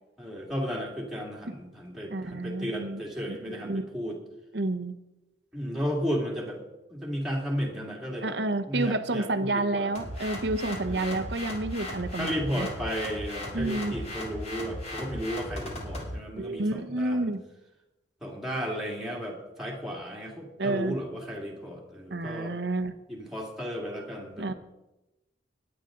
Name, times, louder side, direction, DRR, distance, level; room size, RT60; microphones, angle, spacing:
voice 1, 0.2-4.2 5.5-6.6 6.9-8.4 8.7-9.9 10.9-11.2 12.2-17.3 18.2-22.5 23.1-24.5, equal, ahead, -3 dB, 2.5 m, -34 dB
voice 2, 2.1-3.0 3.3-3.9 4.5-4.9 8.2-12.7 13.5-13.9 16.4-17.4 20.6-21.0 22.1-22.9 24.4-24.5, right 2 dB, 65° right, 9 dB, 1.0 m, -30 dB
sound 1, 9.9-16.1, left 1 dB, 35° left, 2.9 m, -37 dB
20.0 x 9.1 x 3.9 m, 0.97 s
head